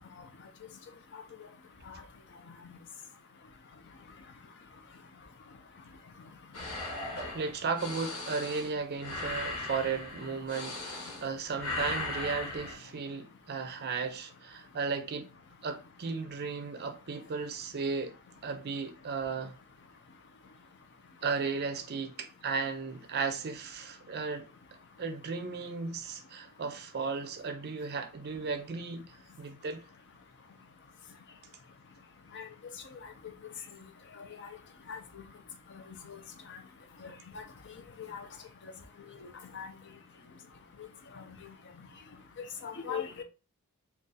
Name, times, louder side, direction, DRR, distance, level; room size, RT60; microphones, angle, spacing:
sound 1, 6.5-11.3 11.6-12.7, left 2 dB, 70° left, 1.1 m, -38 dB
voice 1, 7.3-15.3 15.6-18.1 18.4-19.6 21.2-24.5 25.0-29.1 29.4-29.8, right 5 dB, 45° right, 0.5 m, -35 dB
voice 2, 37.0-37.4 38.1-38.2 39.5-39.7 42.6-43.2, left 7 dB, 55° left, 0.5 m, -38 dB
2.6 x 2.4 x 3.8 m
head